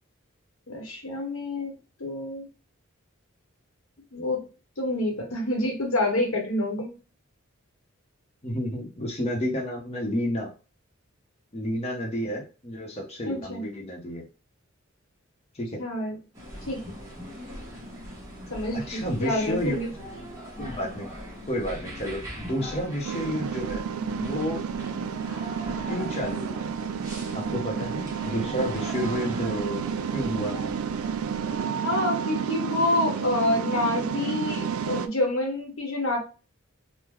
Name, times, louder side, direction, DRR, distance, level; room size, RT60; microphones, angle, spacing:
voice 1, 0.7-1.7 2.0-2.5 4.1-4.4 4.8-6.9 13.2-13.6 15.8-16.2 16.7-16.9 18.5-19.9 31.8-36.2, left 1 dB, 75° left, 2 dB, 0.9 m, -27 dB
voice 2, 8.4-10.5 11.5-14.2 15.5-15.8 18.7-19.9 20.6-21.1 21.5-23.9 24.2-24.6 25.9-26.7 27.3-29.8 30.1-30.7, equal, 30° left, -1 dB, 0.7 m, -30 dB
sound 1, 16.3-31.6, equal, 15° right, 0.9 m, -40 dB
sound 2, 23.0-35.1, right 7 dB, 85° right, 0.3 m, -31 dB
3.6 x 2.0 x 3.0 m, 0.33 s
head